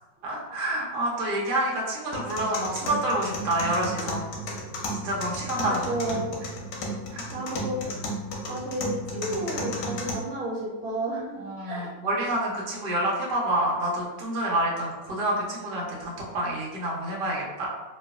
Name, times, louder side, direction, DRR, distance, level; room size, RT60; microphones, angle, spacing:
voice 1, 0.2-4.2 4.9-5.8 6.1-6.5 7.1-7.3 11.4-17.7, right 1 dB, 65° right, -4 dB, 1.2 m, -28 dB
sound 1, 2.1-10.1, left 1 dB, 85° left, 1.5 m, -34 dB
voice 2, 5.6-6.3 7.3-7.9 8.5-11.9, right 1 dB, 80° right, -3 dB, 1.7 m, -32 dB
3.1 x 3.0 x 2.4 m, 1.2 s
omnidirectional pair, 2.2 m